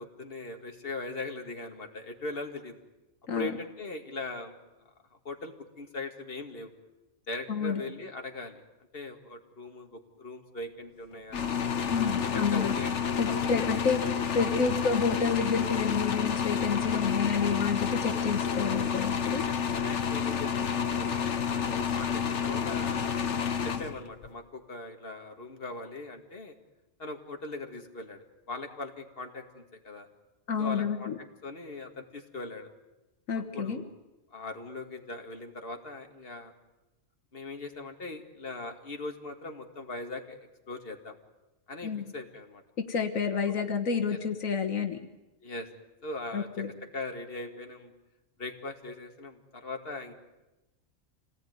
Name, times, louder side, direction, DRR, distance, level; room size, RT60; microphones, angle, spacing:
voice 1, 0.0-2.7 3.3-4.6 5.1-6.7 7.3-8.6 8.9-11.4 12.0-14.3 19.2-23.1 23.6-26.5 27.0-30.1 30.6-32.7 33.5-33.9 34.3-36.5 37.3-40.4 40.7-41.1 41.7-42.6 44.1-44.2 45.4-45.7 46.0-46.7 46.9-47.9 48.4-50.1, left 2 dB, 45° left, 4 dB, 2.4 m, -40 dB
voice 2, 7.5-7.8 11.9-12.7 13.2-19.4 30.5-31.2 33.3-33.8 41.8-42.1 42.9-45.0 46.3-46.7, left 5 dB, 85° left, 5 dB, 1.8 m, -29 dB
sound 1, 11.3-24.3, left 7 dB, 60° left, 1.4 m, -30 dB
27.5 x 18.5 x 9.5 m, 1.0 s
omnidirectional pair, 1.4 m